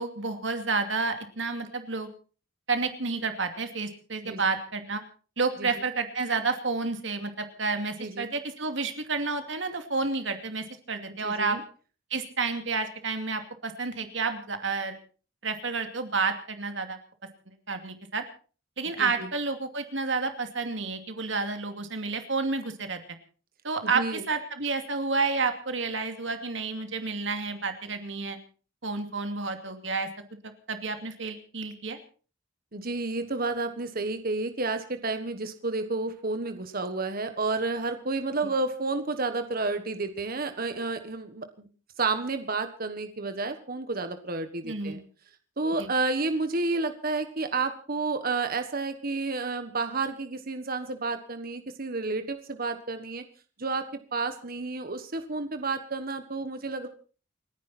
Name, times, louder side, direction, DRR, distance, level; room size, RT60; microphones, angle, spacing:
voice 1, 0.0-2.1 2.7-5.0 5.4-11.6 12.1-15.0 15.4-17.0 17.7-18.2 18.8-23.0 23.6-28.4 28.8-30.1 30.7-32.0 44.6-45.0 45.8-45.9, right 4 dB, 70° right, 6 dB, 2.7 m, -30 dB
voice 2, 11.2-11.6 19.0-19.3 23.8-24.2 32.7-41.7 42.0-45.0 45.6-53.2 53.6-56.9, right 3 dB, 50° right, 8 dB, 1.5 m, -31 dB
29.5 x 10.5 x 4.4 m, 0.40 s
head